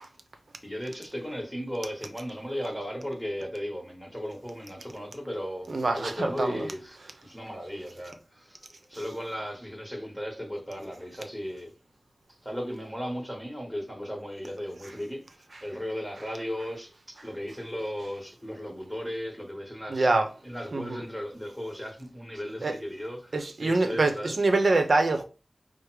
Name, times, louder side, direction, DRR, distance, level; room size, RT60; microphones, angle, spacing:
voice 1, 0.6-8.6 8.9-11.7 12.4-20.1 20.4-24.3, equal, 5° left, 1.3 m, -36 dB
voice 2, 5.7-6.7 19.9-20.3 20.7-21.0 22.6-22.8 23.3-25.2, right 2 dB, 75° right, 0.7 m, -25 dB
5.0 x 2.1 x 4.7 m
wide cardioid pair, 65°, 0 cm